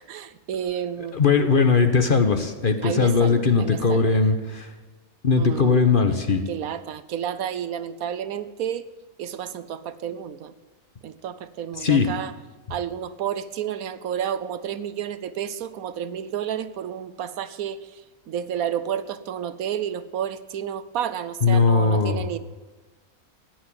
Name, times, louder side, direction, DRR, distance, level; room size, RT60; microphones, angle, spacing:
voice 1, 0.0-1.2 2.8-4.1 5.4-5.8 6.5-8.9 9.2-10.5 11.0-12.3 12.7-18.0 18.3-22.4, right 9 dB, 75° right, 14 dB, 1.1 m, -31 dB
voice 2, 1.1-4.7 5.2-6.4 11.8-12.1 21.4-22.2, left 4 dB, 40° left, 7 dB, 1.1 m, -19 dB
15.5 x 9.1 x 8.8 m, 1.3 s
omnidirectional pair, 1.6 m